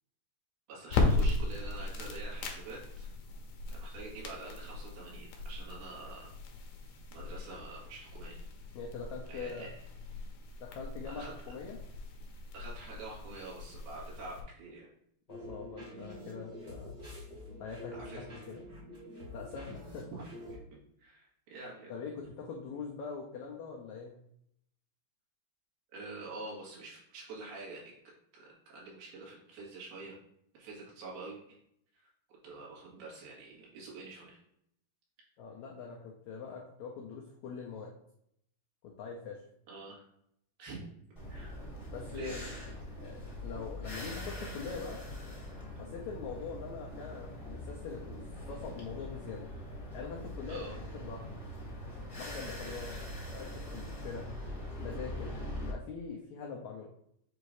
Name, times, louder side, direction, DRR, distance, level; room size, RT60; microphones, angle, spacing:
voice 1, 0.7-3.1 3.7-6.3 7.1-8.4 9.3-9.7 11.1-11.3 12.5-14.9 17.9-18.3 20.5-20.6 21.0-21.9 25.9-28.0 28.3-30.2 30.5-31.6 32.4-34.4 39.7-40.1 40.6-40.8 41.3-41.7 42.1-42.4 50.5-50.8 52.4-53.0, right 3 dB, 90° right, -5 dB, 3.8 m, -46 dB
sound 1, 0.8-14.4, left 3 dB, 70° left, 1.7 m, -37 dB
voice 2, 8.7-9.7 10.6-11.8 15.3-17.0 17.6-18.6 19.3-20.1 21.9-24.2 35.4-37.9 38.8-39.4 41.9-42.5 43.0-45.0 45.8-49.5 49.9-51.4 52.1-52.9 53.3-54.3 54.8-56.9, left 5 dB, 90° left, -1 dB, 1.6 m, -43 dB
sound 2, 15.3-20.5, left 1 dB, 60° right, 0.7 m, -47 dB
sound 3, 41.2-55.7, left 1 dB, 25° left, 0.6 m, -42 dB
7.3 x 2.7 x 4.8 m, 0.73 s
omnidirectional pair, 4.2 m